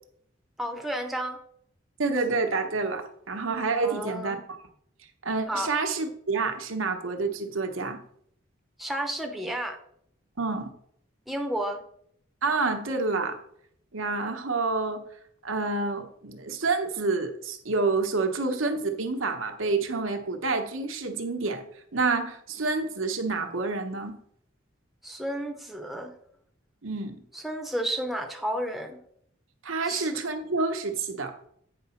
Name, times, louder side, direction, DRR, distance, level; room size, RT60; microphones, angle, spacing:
voice 1, 0.6-1.4 3.8-4.4 5.5-5.7 8.8-9.8 11.3-11.8 25.0-26.2 27.3-29.0 29.8-30.1, right 1 dB, ahead, 2 dB, 0.7 m, -32 dB
voice 2, 2.0-4.4 5.2-8.0 10.4-10.7 12.4-13.4 13.9-15.0 15.4-21.6 21.9-24.2 26.8-27.2 29.6-31.3, right 3 dB, 85° right, 5 dB, 1.0 m, -28 dB
8.6 x 3.9 x 5.7 m, 0.68 s
head